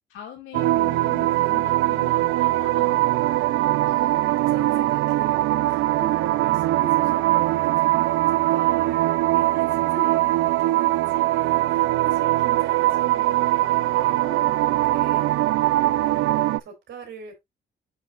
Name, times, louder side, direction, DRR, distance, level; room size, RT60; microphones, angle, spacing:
voice 1, 0.1-3.4, left 9 dB, 85° left, 2.3 m, -42 dB
sound 1, 0.5-16.6, right 16 dB, 85° right, 0.5 m, -21 dB
voice 2, 3.9-16.0 16.3-17.4, right 6 dB, 65° right, 4.1 m, -40 dB
7.9 x 7.1 x 2.5 m
cardioid pair, 90°, 20 cm